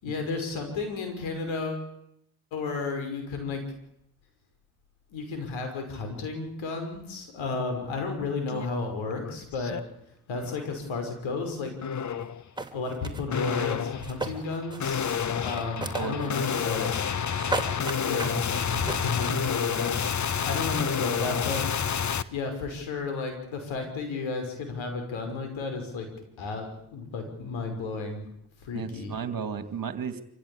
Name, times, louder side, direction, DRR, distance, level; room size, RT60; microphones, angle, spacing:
voice 1, 0.0-1.9 2.5-3.6 5.1-9.8 10.3-11.7 12.7-15.0 15.4-17.0 18.0-21.7 21.9-26.1 26.4-28.2 28.6-29.1, left 3 dB, 75° left, 5 dB, 5.8 m, -33 dB
sound 1, 8.5-8.7 9.1-9.8 10.3-10.7 11.8-12.4 13.3-22.2, left 7 dB, 35° left, 1.1 m, -29 dB
sound 2, 12.2-12.3 12.6-13.2 13.9-15.0 15.3-16.3 16.5-17.2 17.5-18.4 18.9-19.3, right 3 dB, 10° right, 3.2 m, -34 dB
voice 2, 15.9-16.4 17.3-17.6 28.7-30.2, right 6 dB, 45° right, 10 dB, 2.4 m, -34 dB
26.5 x 15.5 x 8.8 m, 0.77 s
supercardioid pair, 60°, 47 cm